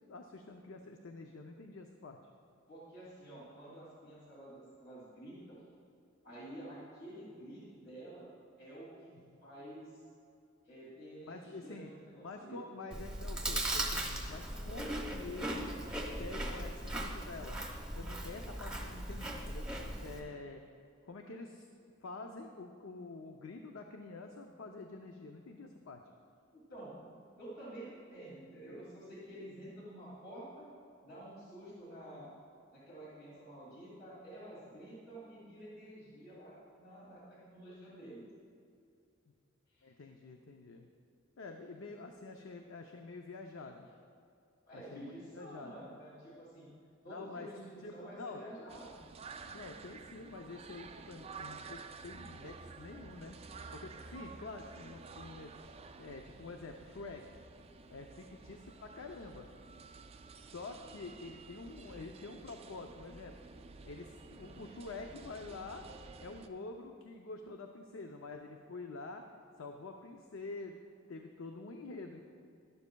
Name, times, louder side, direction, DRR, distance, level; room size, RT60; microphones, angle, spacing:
voice 1, 0.1-2.2 9.3-9.4 11.2-11.9 12.2-15.6 16.2-17.6 17.9-19.7 20.0-20.6 21.0-21.7 22.0-26.0 39.3-39.4 39.8-40.9 41.4-43.9 44.7-45.7 47.1-47.5 47.8-48.4 49.5-53.4 53.7-55.5 56.0-57.2 57.9-59.5 60.4-63.3 63.8-65.9 66.2-69.2 69.6-72.2, left 3 dB, 70° left, 4 dB, 0.5 m, -47 dB
voice 2, 2.7-5.6 6.2-8.3 8.6-9.1 9.4-10.0 10.6-12.6 26.5-30.7 31.0-32.3 32.7-38.2 39.7-39.9 41.8-41.9 44.7-46.7 47.0-49.0, right 1 dB, 55° left, -7 dB, 2.6 m, -50 dB
Chewing mastication, 12.9-20.2, right 1 dB, 5° right, 0.9 m, -38 dB
sound 1, 48.7-66.5, right 4 dB, 30° right, 0.4 m, -51 dB
12.0 x 11.5 x 2.2 m, 2.4 s
head